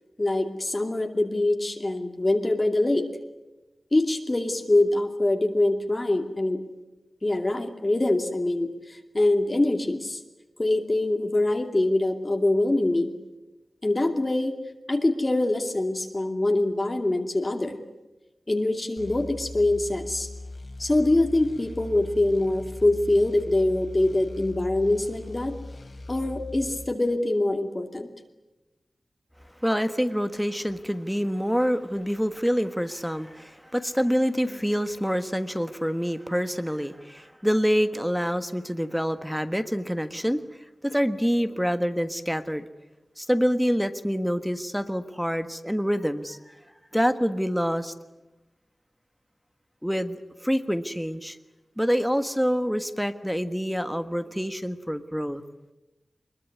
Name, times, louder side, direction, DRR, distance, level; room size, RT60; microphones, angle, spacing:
voice 1, 0.2-3.1 3.9-6.6 7.2-10.2 10.6-13.1 13.8-14.5 14.9-17.8 18.5-20.3 20.8-25.5 26.1-28.1, left 2 dB, 30° left, 4 dB, 2.6 m, -24 dB
sound 1, 19.0-26.9, left 2 dB, 55° left, 3.9 m, -40 dB
voice 2, 29.6-40.4 40.8-42.6 43.2-46.5 46.9-47.9 49.8-51.4 51.8-55.4, equal, ahead, 10 dB, 1.5 m, -26 dB
23.0 x 22.0 x 9.7 m, 1.0 s
wide cardioid pair, 70°, 0 cm